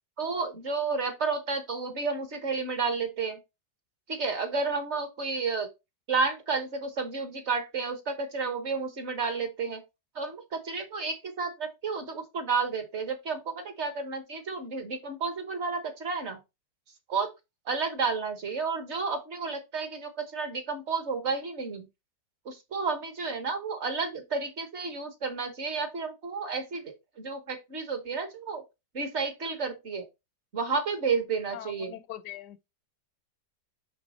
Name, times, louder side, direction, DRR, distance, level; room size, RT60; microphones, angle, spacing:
voice 1, 0.2-3.4 4.1-5.7 6.1-9.8 10.1-16.4 17.1-17.3 17.6-21.9 22.4-28.6 28.9-30.1 30.5-32.0, right 4 dB, 45° right, 1.4 m, -31 dB
voice 2, 31.5-32.7, left 12 dB, 75° left, 1.2 m, -42 dB
9.6 x 3.3 x 4.2 m
omnidirectional pair, 1.9 m